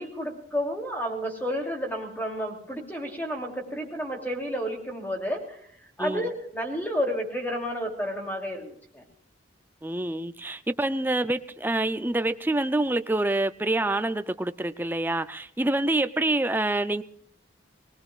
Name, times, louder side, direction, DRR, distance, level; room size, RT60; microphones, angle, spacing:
voice 1, 0.0-5.6 6.0-9.0, equal, 10° left, 2.9 m, -31 dB
voice 2, 9.8-17.0, right 2 dB, 10° right, 0.5 m, -26 dB
23.0 x 18.0 x 2.4 m
head